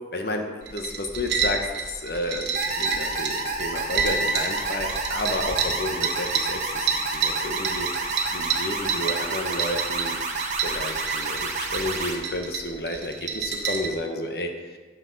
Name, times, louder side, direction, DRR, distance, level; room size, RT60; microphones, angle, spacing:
voice 1, 0.1-7.9 8.3-10.2 10.6-14.8, left 1 dB, 60° left, 4 dB, 1.1 m, -31 dB
sound 1, 0.6-13.9, right 5 dB, 80° right, 1.2 m, -29 dB
sound 2, 2.6-12.2, right 3 dB, 40° right, 1.0 m, -30 dB
9.6 x 7.3 x 4.1 m, 1.3 s
head